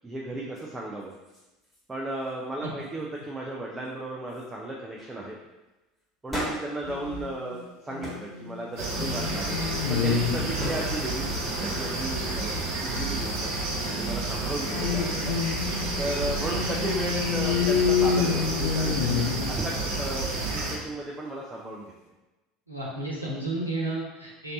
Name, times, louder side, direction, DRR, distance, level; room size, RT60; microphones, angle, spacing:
voice 1, 0.0-1.1 1.9-5.4 6.2-9.6 9.9-13.5 13.9-15.3 16.0-20.3 20.7-21.9, right 2 dB, 15° right, -2 dB, 0.5 m, -35 dB
sound 1, 0.5-0.6 1.0-1.8 2.1-2.4 2.8-3.3 3.8-3.9 4.3-4.5 5.0-5.2 6.3-7.7 8.0-8.3 8.7-9.2 9.8-11.4 17.4-18.8, equal, 5° left, 1.5 m, -40 dB
sound 2, 6.9-7.6 7.9-11.0 14.7-20.0, left 6 dB, 60° left, 0.4 m, -29 dB
sound 3, 8.8-20.8, right 2 dB, 55° right, 0.8 m, -30 dB
voice 2, 22.7-24.5, right 2 dB, 90° right, -5 dB, 0.8 m, -32 dB
3.2 x 2.7 x 3.9 m, 1.1 s
figure-of-eight pair, 70°, 0 cm